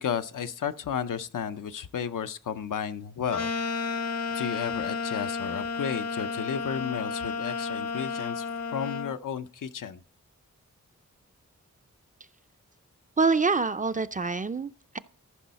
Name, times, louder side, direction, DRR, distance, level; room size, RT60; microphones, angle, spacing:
voice 1, 0.0-3.5 4.3-10.0, left 7 dB, 85° left, 0.7 m, -33 dB
sound 1, 3.3-9.1, left 4 dB, 55° left, 0.9 m, -32 dB
voice 2, 13.2-15.0, right 4 dB, 25° right, 0.4 m, -26 dB
14.5 x 5.5 x 4.1 m
cardioid pair, 60°, 31 cm